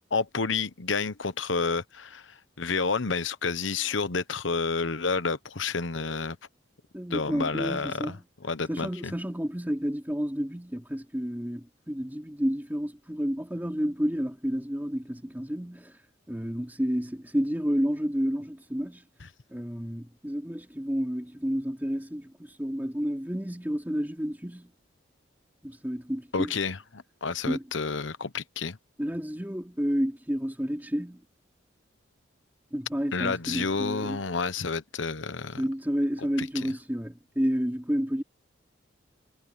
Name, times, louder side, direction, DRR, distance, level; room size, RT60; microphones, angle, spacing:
voice 1, 0.1-6.4 7.1-8.1 8.4-9.1 26.3-28.8 33.1-35.6 36.4-36.7, left 4 dB, 80° left, 1.1 m, -30 dB
voice 2, 6.9-8.2 8.7-16.0 16.3-19.0 19.5-24.7 25.6-26.5 27.5-27.6 29.0-31.2 32.7-34.2 35.6-38.2, equal, 10° right, 3.2 m, -30 dB
head